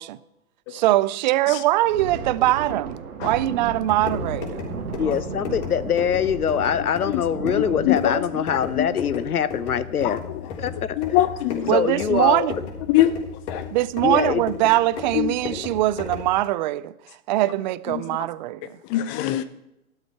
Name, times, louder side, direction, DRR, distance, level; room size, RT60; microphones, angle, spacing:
voice 1, 0.7-4.7 11.7-12.5 13.7-16.9 17.3-18.6, right 15 dB, 35° right, 0.5 m, -22 dB
Thunder, 1.7-10.8 11.1-11.3 11.7-12.0 12.6-13.1, right 5 dB, 75° right, 2.0 m, -35 dB
sound 1, 3.7-16.4, left 6 dB, 50° left, 3.8 m, -35 dB
voice 2, 5.0-10.2 10.6-11.0 11.7-12.6 14.0-14.4, left 8 dB, 85° left, 0.9 m, -23 dB
voice 3, 7.1-8.9 10.0-10.2 11.0-11.8 12.9-13.2 13.5-13.6 15.1-15.4 17.9-18.2 18.9-19.4, left 13 dB, 25° left, 0.6 m, -24 dB
14.5 x 12.0 x 4.6 m
hypercardioid pair, 115°, 43 cm